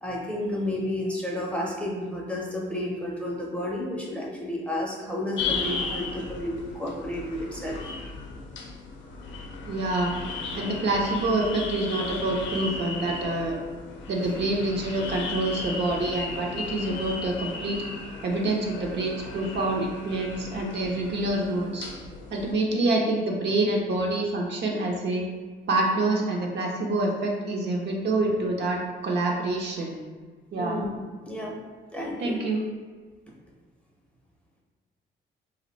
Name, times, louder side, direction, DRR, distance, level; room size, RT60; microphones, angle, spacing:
voice 1, 0.0-7.8 30.6-31.6 31.9-32.4, left 1 dB, 5° left, -3 dB, 0.6 m, -31 dB
sound 1, 5.4-22.5, left 4 dB, 70° left, 0.5 m, -36 dB
voice 2, 9.7-10.1 10.6-13.5 14.1-17.8 18.2-21.9 22.3-25.2 25.7-28.8 29.0-30.0 30.5-30.8 32.2-32.6, right 2 dB, 60° right, -1 dB, 0.6 m, -26 dB
2.5 x 2.1 x 3.9 m, 1.5 s
cardioid pair, 90°, 20 cm